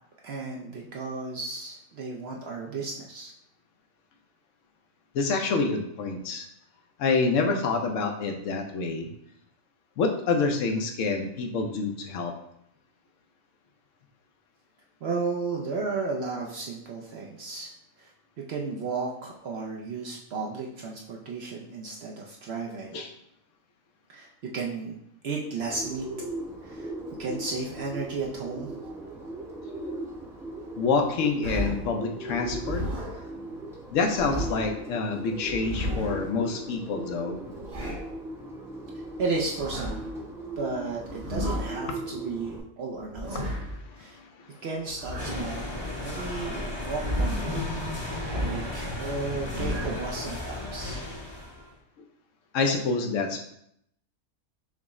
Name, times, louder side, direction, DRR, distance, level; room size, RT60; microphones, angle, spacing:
voice 1, 0.2-3.3 15.0-17.7 18.0-18.1 18.5-23.0 24.1-24.3 24.5-25.0 25.2-26.1 26.6-26.9 27.2-28.7 39.2-40.1 40.6-43.6 44.0-44.2 44.6-45.6 46.0-47.7 48.0-51.0, right 4 dB, 65° right, -2 dB, 0.7 m, -34 dB
voice 2, 5.1-6.5 7.0-9.1 10.0-12.3 22.9-23.1 30.8-32.8 33.9-37.4 43.3-44.6 48.3-48.5 52.5-53.4, left 4 dB, 70° left, 4 dB, 0.9 m, -27 dB
Bird, 25.6-42.6, right 1 dB, 5° right, 0.4 m, -39 dB
sound 1, 31.4-32.0 32.4-33.3 33.9-34.7 35.4-36.3 37.3-38.2 39.3-40.1 41.0-41.8 42.9-43.8 44.9-45.7 46.7-47.6 48.2-48.8 49.3-50.1, equal, 40° right, 1.0 m, -33 dB
sound 2, 45.2-51.7, left 1 dB, 25° left, 0.8 m, -34 dB
5.9 x 2.1 x 3.6 m, 0.74 s
omnidirectional pair, 1.5 m